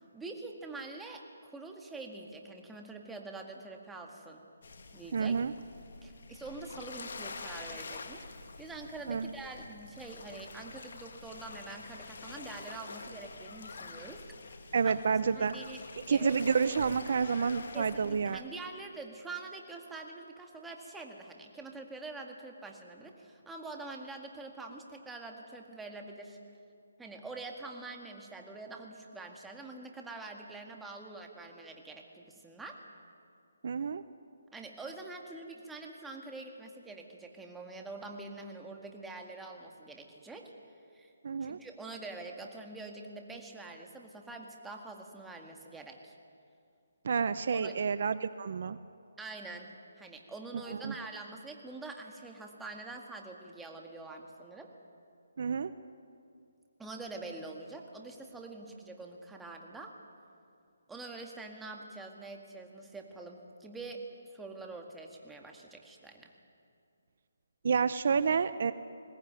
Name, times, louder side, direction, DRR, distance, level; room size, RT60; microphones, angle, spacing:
voice 1, 0.1-4.4 4.9-5.4 6.0-8.3 8.6-14.2 14.6-15.0 15.3-15.8 16.1-16.3 17.7-26.4 27.0-32.8 34.5-40.5 40.9-41.1 41.4-46.1 47.5-47.8 49.2-49.7 50.0-54.7 56.8-59.9 60.9-66.3, right 3 dB, 5° right, 2 dB, 1.9 m, -45 dB
sound 1, 4.6-18.4, left 4 dB, 60° left, 2.0 m, -47 dB
voice 2, 5.1-5.5 9.1-9.3 14.7-15.5 16.1-18.4 33.6-34.0 41.2-41.6 47.0-48.8 50.7-50.9 55.4-55.7 67.6-68.7, right 6 dB, 55° right, 14 dB, 0.7 m, -29 dB
21.0 x 18.0 x 9.1 m, 2.5 s
hypercardioid pair, 155°, 0 cm